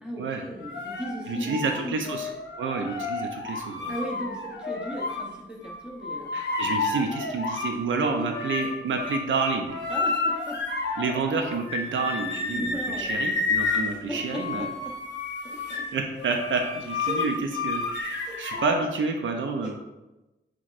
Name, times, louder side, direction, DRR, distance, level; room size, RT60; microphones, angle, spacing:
voice 1, 0.0-1.6 1.8-2.0 3.9-6.5 8.0-8.4 9.9-10.6 12.5-13.3 14.1-14.2 14.6-14.7 15.4-15.8 17.1-17.2 18.2-18.6 19.6-19.7, equal, 5° right, -3 dB, 0.8 m, -36 dB
sound 1, 0.6-5.3 5.6-7.8 8.1-18.9, left 3 dB, 65° left, 0.6 m, -31 dB
voice 2, 1.3-2.3 2.6-3.9 6.3-9.8 11.0-14.7 15.9-17.3 17.6-19.7, right 4 dB, 80° right, 4 dB, 0.5 m, -29 dB
5.8 x 3.0 x 2.5 m, 1.0 s
wide cardioid pair, 150°, 20 cm